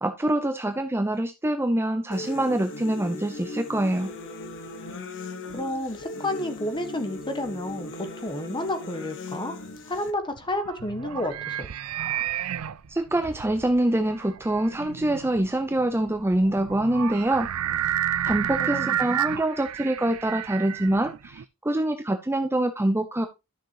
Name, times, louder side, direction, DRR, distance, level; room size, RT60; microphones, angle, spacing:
voice 1, 0.0-4.1 12.9-17.5 18.2-23.3, right 1 dB, 10° right, 7 dB, 0.5 m, -25 dB
sound 1, 2.1-10.1, left 2 dB, 60° left, 1.3 m, -38 dB
voice 2, 5.5-9.6 9.9-11.7 17.7-17.9 18.6-19.2, left 1 dB, 20° left, 7 dB, 1.3 m, -31 dB
sound 2, 10.0-21.4, right 10 dB, 70° right, 0.4 m, -31 dB
sound 3, 12.6-18.6, left 1 dB, 80° left, 4.2 m, -49 dB
11.5 x 6.5 x 2.9 m, 0.25 s
head